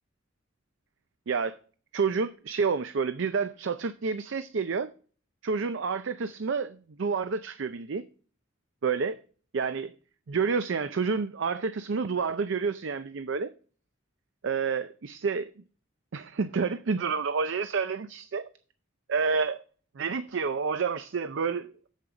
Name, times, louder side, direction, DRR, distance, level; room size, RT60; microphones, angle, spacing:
voice 1, 1.3-1.6 1.9-4.9 5.4-8.0 8.8-9.2 9.5-9.9 10.3-13.5 14.4-15.5 16.1-18.4 19.1-19.6 20.0-21.9, right 5 dB, 65° right, 0.5 m, -29 dB
8.5 x 7.4 x 3.9 m
head